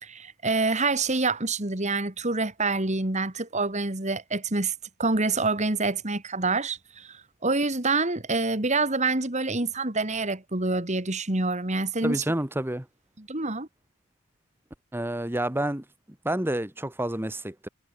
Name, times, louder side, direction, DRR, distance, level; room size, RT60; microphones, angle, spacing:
voice 1, 0.0-4.7 5.0-12.2 13.2-13.7, right 3 dB, 30° right, 2.3 m, -27 dB
voice 2, 12.0-12.9 14.9-15.8 16.2-17.7, right 1 dB, 10° right, 1.1 m, -29 dB
head